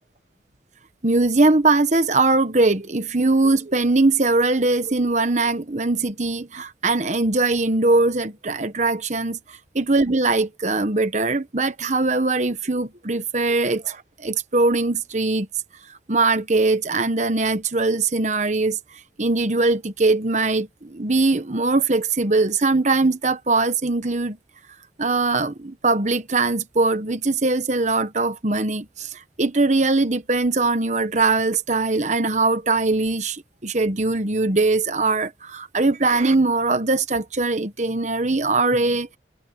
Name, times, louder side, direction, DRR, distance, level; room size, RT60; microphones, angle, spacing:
voice 1, 1.0-9.4 9.7-15.5 16.1-18.8 19.2-24.4 25.0-39.1, right 3 dB, 40° right, 1.2 m, -21 dB
head